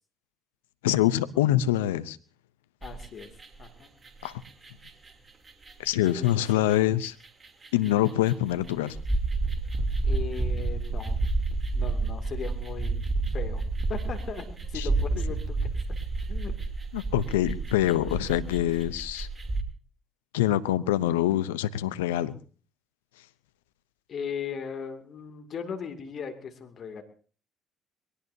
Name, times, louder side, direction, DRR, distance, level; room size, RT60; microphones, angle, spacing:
voice 1, 0.8-2.2 4.2-4.4 5.8-7.1 7.7-9.0 14.7-14.9 16.9-19.3 20.3-22.4, left 13 dB, 90° left, 15 dB, 0.6 m, -25 dB
voice 2, 2.8-3.3 3.6-3.9 6.0-6.8 10.0-11.2 11.7-13.0 13.3-15.7 16.3-16.5 24.1-27.0, left 7 dB, 55° left, 7 dB, 2.5 m, -38 dB
sound 1, 2.8-3.7 4.0-19.6, right 3 dB, 35° right, 3.0 m, -30 dB
22.5 x 18.0 x 2.7 m, 0.40 s
hypercardioid pair, 55°, 0 cm